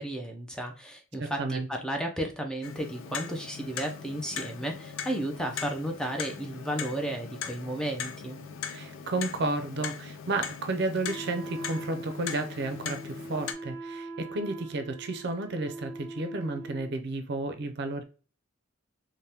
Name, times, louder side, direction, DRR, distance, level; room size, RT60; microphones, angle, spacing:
voice 1, 0.0-8.4, right 1 dB, 5° left, 0.3 m, -33 dB
voice 2, 1.2-1.7 8.7-18.0, right 2 dB, 55° right, 0.5 m, -32 dB
Clock, 2.6-13.5, left 7 dB, 85° left, 0.4 m, -40 dB
Wind instrument woodwind instrument, 11.0-16.9, right 2 dB, 20° left, 1.1 m, -42 dB
3.4 x 2.1 x 2.7 m
head